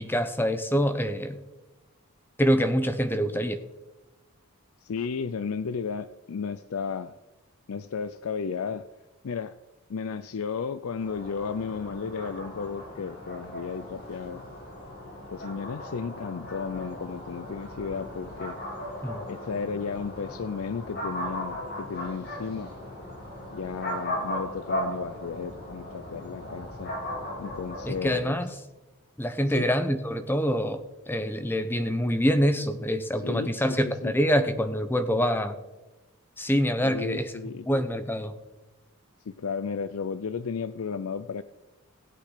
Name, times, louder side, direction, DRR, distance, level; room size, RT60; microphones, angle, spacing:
voice 1, 0.0-1.4 2.4-3.6 19.0-19.2 27.8-28.5 29.2-35.6 36.4-37.3 37.7-38.3, equal, 10° left, 9 dB, 0.8 m, -25 dB
voice 2, 4.8-7.2 7.7-8.9 9.2-9.6 9.9-14.4 15.3-18.6 19.3-22.7 23.5-26.9 27.4-28.6 29.5-29.7 33.2-34.1 36.8-37.7 39.2-41.4, left 5 dB, 75° left, 12 dB, 0.4 m, -34 dB
sound 1, 11.0-28.1, left 1 dB, 45° left, 4.5 m, -37 dB
16.5 x 8.6 x 5.0 m, 1.1 s
head